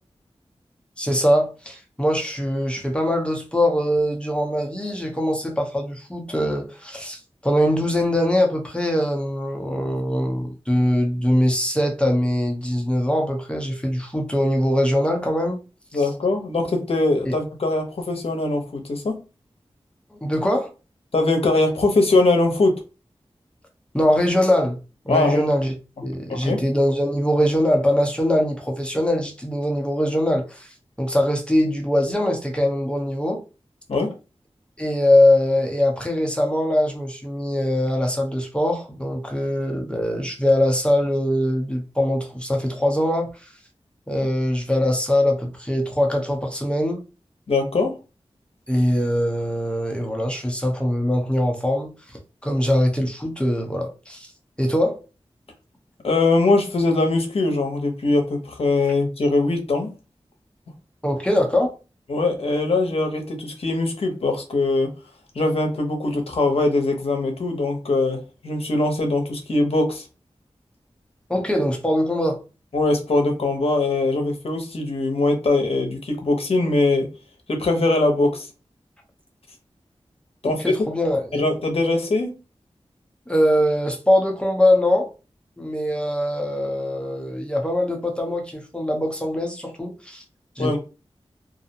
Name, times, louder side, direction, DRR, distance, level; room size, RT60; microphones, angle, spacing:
voice 1, 1.0-15.6 15.9-16.0 17.3-17.4 20.2-20.7 23.9-24.8 25.1-25.7 26.0-30.7 31.0-33.4 34.8-43.3 44.1-47.0 48.7-51.9 52.4-54.3 54.6-55.0 61.0-61.7 71.3-72.4 80.4-81.4 83.3-85.1 85.6-90.2 90.6-90.8, left 1 dB, 10° left, 0.7 m, -22 dB
voice 2, 15.9-19.2 21.1-22.8 25.1-25.4 26.3-26.6 33.9-34.1 47.5-48.0 56.0-59.9 62.1-64.9 65.3-70.0 72.7-77.1 77.5-78.5 80.4-80.6 81.3-82.3 90.6-90.8, left 2 dB, 70° left, 0.7 m, -21 dB
2.4 x 2.0 x 2.7 m
wide cardioid pair, 70°, 10 cm